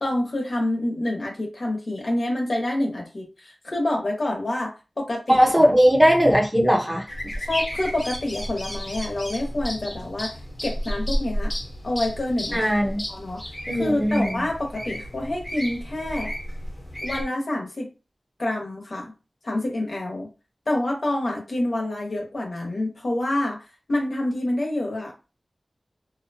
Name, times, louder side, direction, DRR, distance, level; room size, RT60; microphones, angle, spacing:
voice 1, 0.0-5.4 7.4-10.3 10.6-11.5 11.8-12.6 13.1-13.4 13.8-16.3 17.0-17.9 18.4-19.1 19.4-20.3 20.7-23.6 23.9-25.1, left 1 dB, 65° left, -1 dB, 0.9 m, -27 dB
voice 2, 5.3-7.1 12.5-13.0 13.7-14.4, equal, 15° right, 0 dB, 0.8 m, -18 dB
sound 1, 7.1-17.2, equal, 30° left, 1.0 m, -32 dB
2.7 x 2.1 x 2.8 m, 0.31 s
wide cardioid pair, 60°, 0 cm